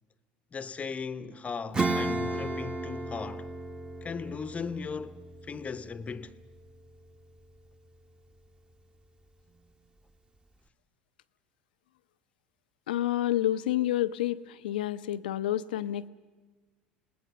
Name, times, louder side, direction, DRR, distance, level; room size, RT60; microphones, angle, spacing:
voice 1, 0.5-3.5 4.0-6.3, left 5 dB, 30° left, 0.9 m, -37 dB
Acoustic guitar / Strum, 1.7-7.7, right 2 dB, 20° right, 1.5 m, -35 dB
voice 2, 12.9-16.1, left 13 dB, 80° left, 0.7 m, -29 dB
27.5 x 19.5 x 6.8 m
hypercardioid pair, 80°, 5 cm